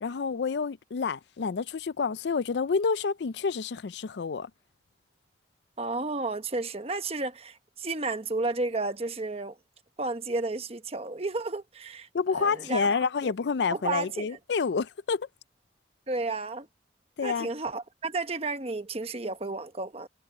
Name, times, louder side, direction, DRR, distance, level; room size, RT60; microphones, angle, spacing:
voice 1, 0.0-4.5 12.1-15.3 17.2-17.5, left 5 dB, 75° left, 0.4 m, -28 dB
voice 2, 5.8-9.6 10.0-12.1 12.4-12.9 13.2-13.3 13.7-14.3 16.1-16.7 17.2-20.1, right 3 dB, 35° right, 1.1 m, -32 dB
head